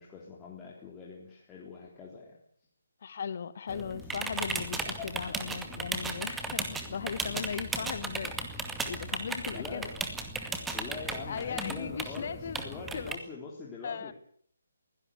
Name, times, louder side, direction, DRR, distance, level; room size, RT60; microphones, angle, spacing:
voice 1, 0.0-2.4 3.7-3.9 5.0-5.1 7.1-7.4 9.5-9.9 10.7-14.1, left 5 dB, 10° left, 3.7 m, -43 dB
voice 2, 3.0-8.6 8.8-9.9 10.4-10.7 11.3-13.2 13.8-14.1, left 6 dB, 45° left, 1.5 m, -38 dB
sound 1, 3.7-13.2, right 3 dB, 5° right, 2.2 m, -36 dB
22.5 x 17.0 x 8.3 m
figure-of-eight pair, 145°, 0 cm